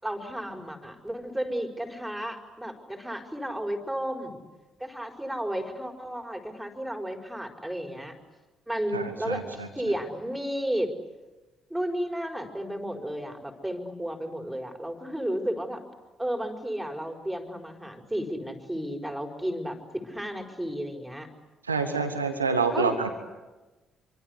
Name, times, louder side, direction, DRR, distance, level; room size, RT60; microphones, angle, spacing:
voice 1, 0.0-4.4 4.8-8.1 8.7-10.9 11.7-15.8 16.2-21.3 22.7-22.9, equal, 5° right, 3 dB, 5.1 m, -33 dB
voice 2, 8.9-9.7 21.7-23.1, right 4 dB, 90° right, 6 dB, 1.8 m, -27 dB
27.0 x 25.0 x 8.3 m, 1.2 s
figure-of-eight pair, 45°, 0 cm